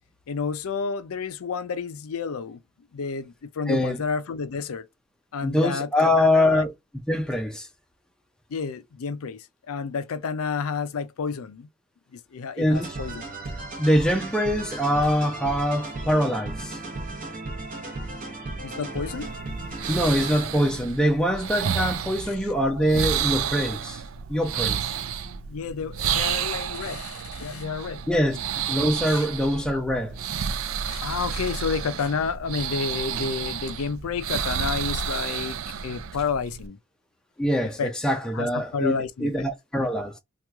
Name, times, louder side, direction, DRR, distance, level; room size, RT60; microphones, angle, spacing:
voice 1, 0.3-2.6 2.9-4.9 5.3-6.7 8.5-11.7 12.1-13.2 18.6-19.3 20.0-20.4 22.3-22.4 24.5-24.7 25.5-28.4 29.1-29.3 30.9-35.6 35.8-36.8 37.8-37.9 38.3-39.5, left 5 dB, 80° left, 0.5 m, -30 dB
voice 2, 3.7-4.0 5.4-6.7 7.1-7.7 12.6-12.9 13.8-16.8 19.9-24.0 24.3-24.9 28.1-28.4 28.7-30.1 37.4-40.2, equal, 5° left, 0.4 m, -23 dB
sound 1, 12.7-20.7, right 2 dB, 40° right, 0.8 m, -35 dB
sound 2, 19.1-36.7, right 8 dB, 70° right, 0.4 m, -31 dB
3.0 x 2.3 x 3.4 m
head